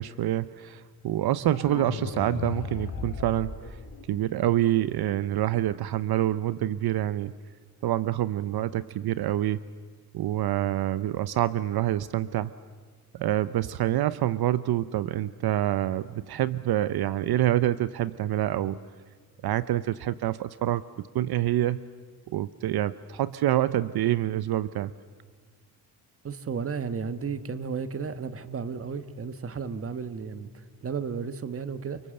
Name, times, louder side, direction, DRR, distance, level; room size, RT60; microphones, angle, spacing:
voice 1, 0.0-3.8 4.1-7.3 7.8-9.6 10.1-12.5 13.1-18.8 19.4-21.8 22.3-24.9, right 13 dB, 70° right, 15 dB, 0.7 m, -27 dB
sound 1, 1.5-4.5, left 5 dB, 55° left, 4.1 m, -36 dB
voice 2, 26.2-30.5 30.8-32.0, right 6 dB, 35° right, 12 dB, 1.4 m, -33 dB
29.5 x 24.5 x 7.7 m, 1.5 s
cardioid pair, 140°, 38 cm